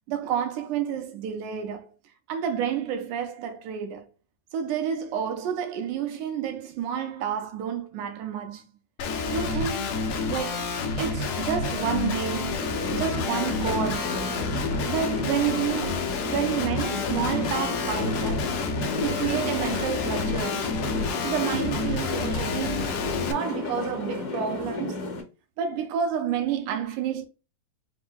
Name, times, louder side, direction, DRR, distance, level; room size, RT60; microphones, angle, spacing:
voice 1, 0.1-1.9 2.3-4.1 4.5-8.7 9.3-10.0 10.3-10.7 11.0-14.2 14.8-18.6 19.0-20.9 21.2-25.0 25.6-27.3, right 8 dB, 85° right, 2.2 m, -30 dB
Guitar, 9.0-23.3, left 4 dB, 75° left, 1.7 m, -29 dB
sound 1, 12.5-25.2, left 3 dB, 55° left, 1.8 m, -34 dB
5.2 x 2.0 x 3.7 m
omnidirectional pair, 3.6 m